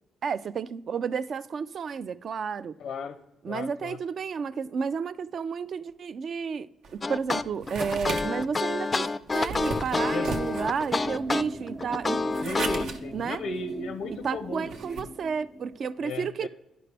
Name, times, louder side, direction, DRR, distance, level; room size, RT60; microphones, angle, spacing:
voice 1, 0.2-2.8 3.4-9.1 9.3-12.2 13.1-13.4 14.2-16.5, right 6 dB, 55° right, 0.3 m, -31 dB
voice 2, 2.8-3.2 3.5-4.0 9.9-10.3 12.4-15.0 16.0-16.5, left 3 dB, 80° left, 0.6 m, -35 dB
sound 1, 6.8-15.0, right 3 dB, 85° right, 0.8 m, -38 dB
sound 2, 7.0-12.8, left 3 dB, 30° left, 0.3 m, -28 dB
sound 3, 10.9-15.9, right 1 dB, 35° right, 1.0 m, -40 dB
11.0 x 5.0 x 3.3 m
cardioid pair, 90°, 0 cm